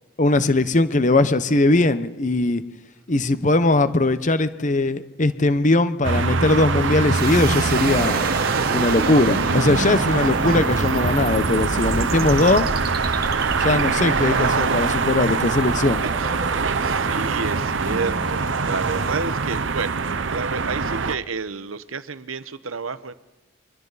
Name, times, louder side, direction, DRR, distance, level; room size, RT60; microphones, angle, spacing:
voice 1, 0.2-2.6 3.1-8.3 8.7-12.7 13.6-16.0, left 2 dB, 35° left, 12 dB, 0.9 m, -20 dB
traffic on medium-close distance, 6.0-21.1, right 4 dB, 65° right, 0.8 m, -23 dB
sound 1, 7.0-19.2, left 1 dB, 65° left, 5.2 m, -41 dB
sound 2, 7.1-20.1, right 2 dB, 50° right, 1.7 m, -30 dB
voice 2, 16.0-20.0 20.3-23.1, right 4 dB, 90° right, 13 dB, 1.0 m, -31 dB
28.5 x 24.5 x 4.1 m, 1.0 s
head